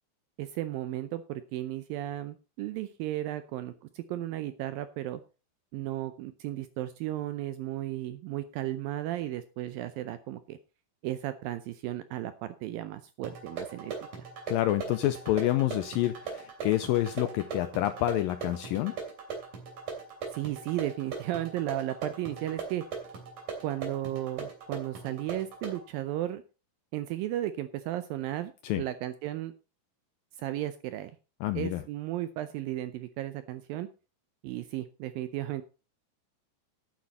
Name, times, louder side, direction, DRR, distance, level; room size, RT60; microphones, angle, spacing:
voice 1, 0.4-5.2 5.7-10.6 11.0-14.3 20.3-22.8 23.6-26.4 26.9-29.5 30.4-31.1 31.6-33.9 34.4-35.6, right 14 dB, 80° right, 12 dB, 2.1 m, -34 dB
sound 1, 13.2-25.8, right 5 dB, 50° right, 4.3 m, -40 dB
voice 2, 14.5-18.9 28.6-28.8 31.4-31.8, left 14 dB, 80° left, 11 dB, 2.0 m, -28 dB
11.5 x 9.1 x 4.1 m, 0.32 s
omnidirectional pair, 4.7 m